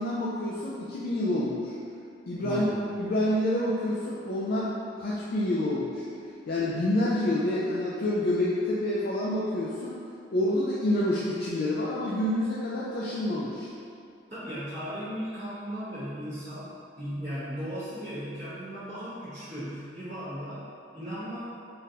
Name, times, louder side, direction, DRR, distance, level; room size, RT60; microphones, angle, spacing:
voice 1, 0.0-1.8 2.3-2.6 3.0-6.1 6.5-10.0 10.3-13.7, left 1 dB, 55° left, -7 dB, 0.4 m, -28 dB
voice 2, 2.4-2.9 14.3-21.4, equal, 40° right, -17 dB, 1.1 m, -36 dB
3.7 x 2.5 x 2.7 m, 2.4 s
head